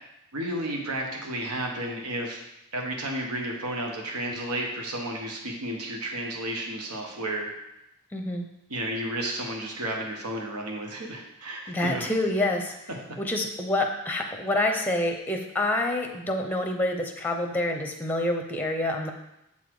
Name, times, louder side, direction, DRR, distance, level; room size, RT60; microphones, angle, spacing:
voice 1, 0.3-2.4 2.7-7.5 8.7-12.1, right 1 dB, 85° right, 1 dB, 1.3 m, -32 dB
voice 2, 8.1-8.4 11.7-12.7 13.2-19.1, left 1 dB, 10° left, 3 dB, 0.6 m, -27 dB
7.3 x 4.1 x 4.8 m, 0.86 s
head